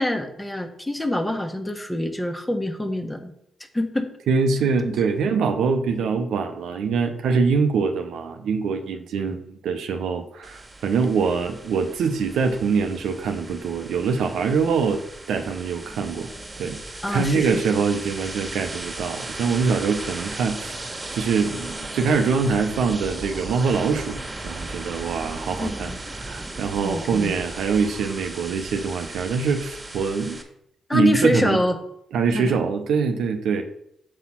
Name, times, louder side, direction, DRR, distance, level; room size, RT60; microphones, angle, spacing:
voice 1, 0.0-3.3 3.7-4.1 9.2-9.4 17.0-17.6 25.6-26.0 26.8-27.4 30.9-31.7 32.3-32.6, left 1 dB, 15° left, 5 dB, 1.3 m, -25 dB
voice 2, 4.3-15.0 15.3-16.3 16.6-30.4 30.9-31.6 32.1-33.6, right 5 dB, 75° right, 5 dB, 0.7 m, -24 dB
sound 1, 10.4-30.4, right 2 dB, 25° right, 1.6 m, -36 dB
6.6 x 4.1 x 5.8 m, 0.75 s
hypercardioid pair, 45°, 0 cm